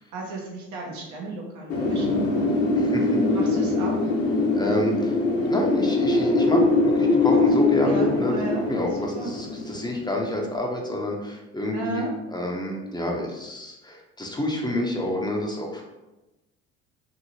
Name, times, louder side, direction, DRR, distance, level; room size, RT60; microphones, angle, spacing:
voice 1, 0.1-2.5 3.3-4.1 7.3-7.4 7.8-8.6 9.1-9.3 11.7-12.1, right 3 dB, 70° right, -2 dB, 0.9 m, -34 dB
Wind, 1.7-10.4, left 2 dB, 50° left, 0.9 m, -22 dB
voice 2, 2.7-3.1 4.5-5.2 5.4-8.3 8.7-12.1 12.3-15.8, left 1 dB, 15° left, -1 dB, 0.6 m, -28 dB
2.8 x 2.7 x 2.7 m, 1.0 s
hypercardioid pair, 65°, 30 cm